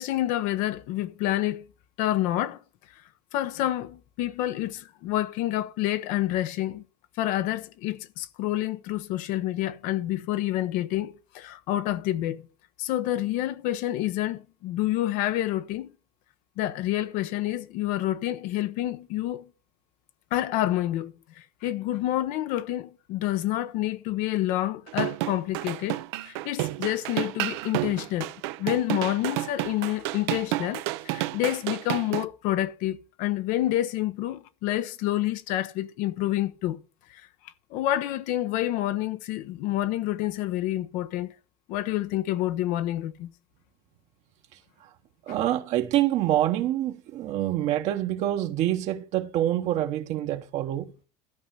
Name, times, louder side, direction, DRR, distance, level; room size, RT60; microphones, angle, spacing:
voice 1, 0.0-1.6 2.0-2.6 3.3-6.8 7.2-12.4 12.8-15.9 16.6-19.4 20.3-21.1 21.6-26.0 26.2-28.3 28.6-36.8 37.1-37.2 37.7-41.3 41.7-43.3, left 14 dB, 70° left, 0.9 m, -28 dB
sound 1, 24.9-32.3, right 17 dB, 85° right, 0.7 m, -30 dB
voice 2, 45.3-50.9, right 13 dB, 55° right, 1.1 m, -26 dB
13.0 x 5.4 x 6.0 m
cardioid pair, 130°, 14 cm